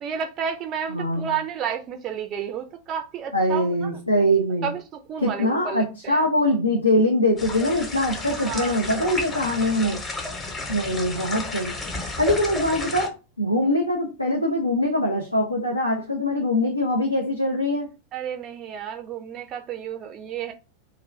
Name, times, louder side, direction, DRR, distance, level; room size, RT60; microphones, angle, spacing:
voice 1, 0.0-3.9 4.6-6.3 8.4-9.1 9.4-9.5 9.8-10.0 18.1-20.5, right 8 dB, 30° right, 0.3 m, -32 dB
voice 2, 0.9-1.3 3.3-4.7 5.2-10.0 10.7-11.8 12.0-13.1 13.4-17.9, left 1 dB, 85° left, 0.5 m, -23 dB
sound 1, 7.4-13.1, left 2 dB, 20° left, 0.8 m, -32 dB
2.4 x 2.2 x 3.2 m
figure-of-eight pair, 90°, 0 cm